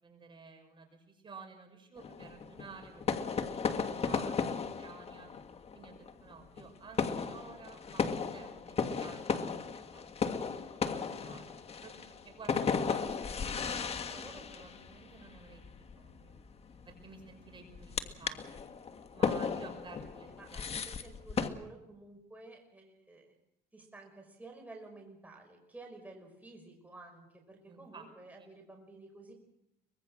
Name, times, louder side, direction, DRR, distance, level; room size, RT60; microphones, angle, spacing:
voice 1, 0.0-5.3 5.7-10.3 10.6-16.3 16.9-18.6 19.1-20.8 27.6-28.0 28.4-28.5, right 5 dB, 30° right, 3 dB, 5.5 m, -53 dB
sound 1, 2.0-21.5, left 6 dB, 35° left, 1.7 m, -36 dB
voice 2, 20.4-23.3 23.7-29.3, right 2 dB, 10° right, 1 dB, 5.4 m, -52 dB
24.0 x 20.5 x 6.4 m, 0.83 s
cardioid pair, 110°, 17 cm